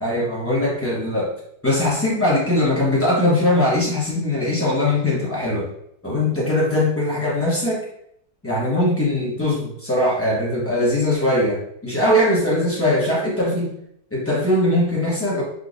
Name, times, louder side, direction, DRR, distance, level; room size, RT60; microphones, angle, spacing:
voice 1, 0.0-1.3 1.6-5.7 6.0-7.8 8.4-13.7 14.1-15.4, left 1 dB, 15° left, -6 dB, 0.5 m, -20 dB
3.7 x 2.9 x 2.4 m, 0.72 s
omnidirectional pair, 1.8 m